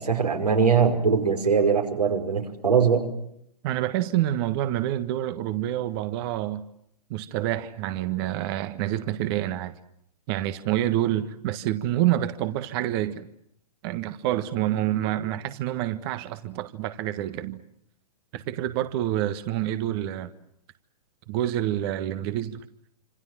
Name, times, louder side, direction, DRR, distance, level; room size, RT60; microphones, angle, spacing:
voice 1, 0.0-3.0, right 6 dB, 85° right, 5.7 m, -21 dB
voice 2, 3.6-6.6 7.1-9.7 10.3-13.3 13.8-17.6 18.3-20.3 21.3-22.6, right 13 dB, 40° right, 1.5 m, -27 dB
27.5 x 27.0 x 7.5 m
figure-of-eight pair, 120°, 20 cm